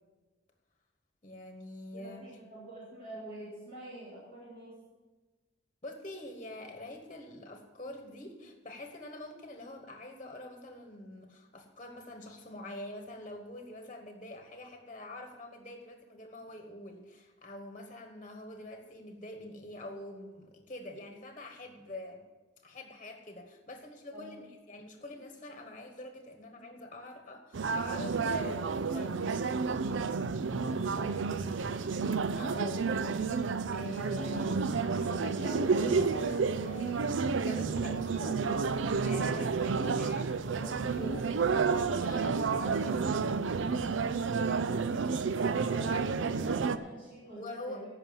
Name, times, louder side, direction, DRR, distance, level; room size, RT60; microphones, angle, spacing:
voice 1, 1.2-2.3 5.8-22.2 22.6-29.4 32.4-32.9 33.7-38.7 39.0-43.4 47.3-47.8, left 1 dB, 30° left, 4 dB, 1.2 m, -45 dB
voice 2, 1.9-4.7 24.1-24.4 27.9-28.1 30.4-31.6 45.3-47.9, right 1 dB, 45° right, -8 dB, 3.4 m, -46 dB
sound 1, 27.5-46.8, right 5 dB, 85° right, 0.5 m, -30 dB
15.0 x 5.9 x 7.1 m, 1.2 s
head